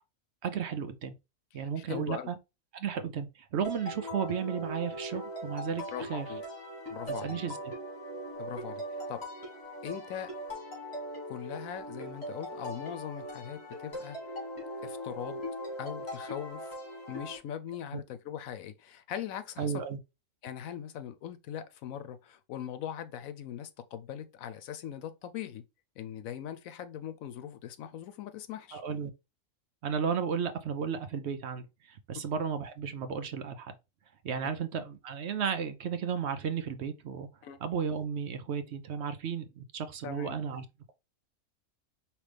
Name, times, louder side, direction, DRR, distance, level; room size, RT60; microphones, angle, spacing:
voice 1, 0.4-1.1 1.5-2.4 2.7-5.8 6.1-6.3 7.2-7.6 17.9-18.0 19.6-20.0 28.7-29.1 29.8-33.7 34.2-37.3 37.6-40.9, right 7 dB, 60° right, 0.8 m, -34 dB
voice 2, 1.5-2.3 5.9-6.4 6.9-7.4 8.4-9.2 9.8-10.3 11.3-14.2 14.8-15.4 15.8-16.8 17.1-19.8 20.4-25.6 26.0-28.8 32.2-32.3 37.4-37.6 40.0-40.4, left 9 dB, 90° left, 1.1 m, -40 dB
sound 1, 3.6-17.4, equal, 50° left, 2.7 m, -40 dB
5.0 x 3.1 x 3.3 m
omnidirectional pair, 1.4 m